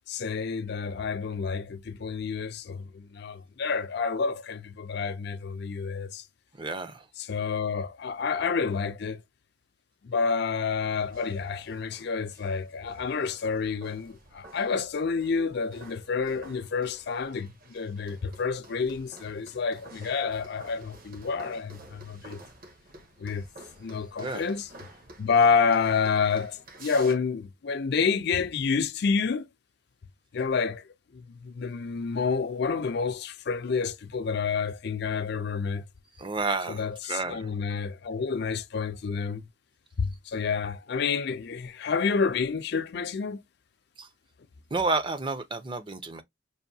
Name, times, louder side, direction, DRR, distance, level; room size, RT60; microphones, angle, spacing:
voice 1, 0.1-6.2 7.2-9.2 10.0-22.4 23.2-23.5 23.8-24.7 25.2-29.5 30.3-30.8 31.1-35.9 36.7-39.4 40.0-43.4, left 5 dB, 55° left, 0.5 m, -29 dB
voice 2, 6.6-7.0 24.2-24.4 36.2-37.5 44.0-44.1 44.7-46.2, right 3 dB, 25° right, 0.6 m, -30 dB
sound 1, 10.8-27.1, right 2 dB, 45° right, 1.0 m, -51 dB
5.5 x 2.6 x 2.6 m
head